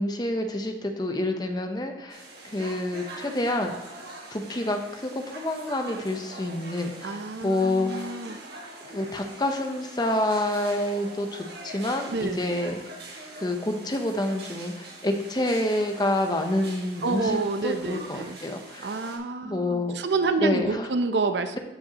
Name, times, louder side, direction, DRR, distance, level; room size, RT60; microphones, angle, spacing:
voice 1, 0.0-2.2 2.5-3.7 4.3-7.2 7.4-8.2 8.8-12.8 13.4-18.9 19.4-20.0 20.4-20.9 21.5-21.6, left 1 dB, 25° left, 5 dB, 0.8 m, -28 dB
sound 1, 2.1-19.2, right 2 dB, 60° right, 1.6 m, -43 dB
voice 2, 7.0-8.4 12.1-12.4 17.0-18.4 18.8-21.6, right 3 dB, 80° right, 8 dB, 0.7 m, -28 dB
13.5 x 5.2 x 2.9 m, 1.1 s
head